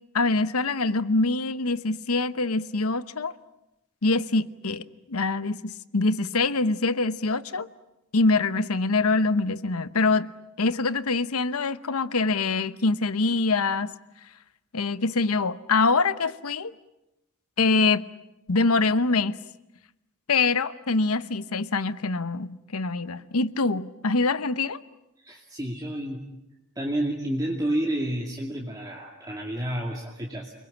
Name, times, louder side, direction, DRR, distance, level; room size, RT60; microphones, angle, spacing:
voice 1, 0.1-3.3 4.0-7.7 8.1-10.3 10.6-13.9 14.7-16.7 17.6-18.0 18.5-19.4 20.3-24.8, left 3 dB, 90° left, 1.0 m, -24 dB
voice 2, 25.2-26.2 26.8-30.5, right 1 dB, 15° right, 2.4 m, -30 dB
29.5 x 21.5 x 8.7 m
head